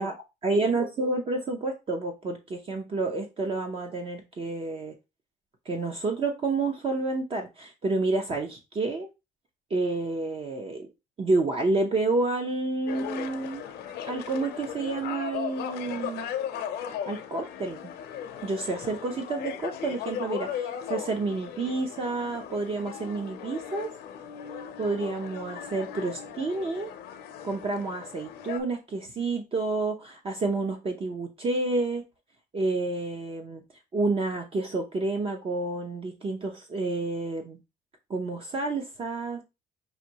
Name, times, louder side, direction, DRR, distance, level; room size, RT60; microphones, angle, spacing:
voice 1, 0.4-5.0 5.7-9.1 9.7-10.9 11.2-13.7 14.1-16.3 17.1-17.9 18.4-23.9 24.8-26.9 27.4-32.0 32.5-33.6 33.9-37.6 38.1-39.4, right 3 dB, 35° right, 0.7 m, -29 dB
sound 1, 12.9-28.6, left 9 dB, 75° left, 0.7 m, -37 dB
5.8 x 2.6 x 2.8 m
cardioid pair, 110°, 17 cm